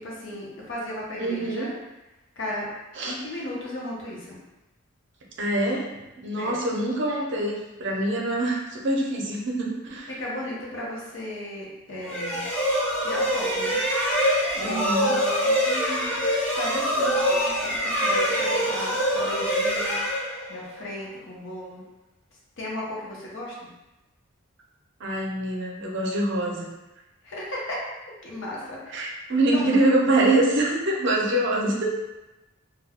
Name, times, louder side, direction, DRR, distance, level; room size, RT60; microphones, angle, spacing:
voice 1, 0.0-1.7 2.4-2.7 3.0-4.4 6.4-6.6 10.1-12.5 13.0-13.8 14.5-16.2 16.5-20.0 20.5-21.8 22.6-23.7 27.2-27.8 28.2-29.1 29.5-29.7, left 1 dB, 65° left, -4 dB, 0.7 m, -35 dB
voice 2, 1.2-1.7 3.0-3.2 5.4-10.1 14.6-15.2 25.0-26.7 28.9-31.9, right 1 dB, 60° right, -2 dB, 0.5 m, -25 dB
sound 1, 12.0-20.8, equal, 5° left, 0.5 m, -24 dB
2.3 x 2.2 x 3.5 m, 1.0 s
head